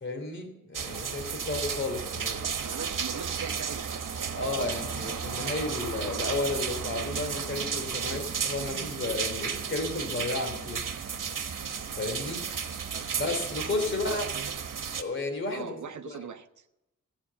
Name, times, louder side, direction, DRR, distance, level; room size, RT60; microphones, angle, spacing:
voice 1, 0.0-2.4 4.3-10.8 12.0-12.4 13.2-14.3 15.0-15.8 16.0-16.2, left 2 dB, 40° left, 3 dB, 2.9 m, -32 dB
sound 1, 0.7-15.0, right 6 dB, 85° right, 1.3 m, -33 dB
voice 2, 2.6-4.7 12.9-13.1 13.7-14.5 15.5-16.7, right 7 dB, 65° right, 9 dB, 1.0 m, -42 dB
15.0 x 8.5 x 6.9 m, 0.90 s
wide cardioid pair, 155°, 31 cm